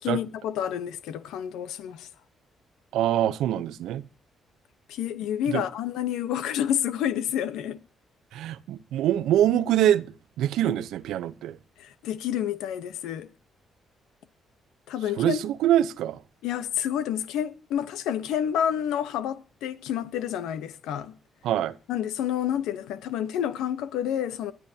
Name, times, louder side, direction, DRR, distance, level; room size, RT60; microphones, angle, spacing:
voice 1, 0.0-2.1 4.9-7.8 11.8-13.3 14.9-15.4 16.4-21.1 21.9-24.5, left 10 dB, 90° left, 1.0 m, -29 dB
voice 2, 2.9-4.0 5.5-5.6 8.3-11.6 15.2-16.2 21.4-21.7, right 11 dB, 85° right, 0.8 m, -24 dB
22.5 x 12.0 x 2.8 m
cardioid pair, 90°, 0 cm